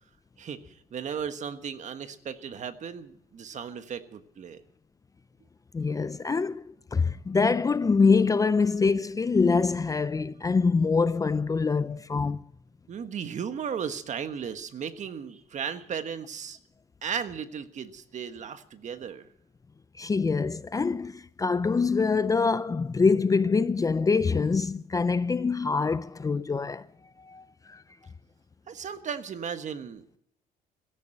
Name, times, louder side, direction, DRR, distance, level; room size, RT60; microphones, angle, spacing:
voice 1, 0.9-4.6 12.9-16.6 17.0-19.3 28.7-30.2, right 7 dB, 45° right, 1.4 m, -35 dB
voice 2, 5.7-6.6 6.9-12.4 20.0-26.9 27.2-27.8, left 4 dB, 20° left, 0.5 m, -25 dB
17.0 x 13.5 x 5.8 m
cardioid pair, 110°, 17 cm